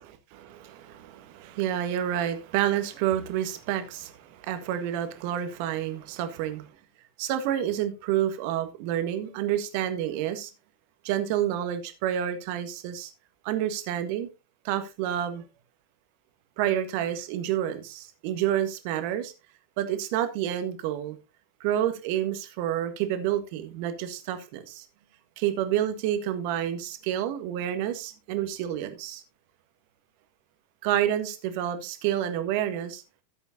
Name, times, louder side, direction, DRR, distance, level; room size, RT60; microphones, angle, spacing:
voice 1, 0.0-6.7 7.2-10.5 11.0-13.1 13.4-14.3 14.6-15.4 16.6-19.3 19.8-21.2 21.6-24.8 25.4-29.2 30.8-33.0, right 11 dB, 45° right, 1.5 m, -29 dB
14.0 x 8.0 x 2.7 m
figure-of-eight pair, 90°, 0 cm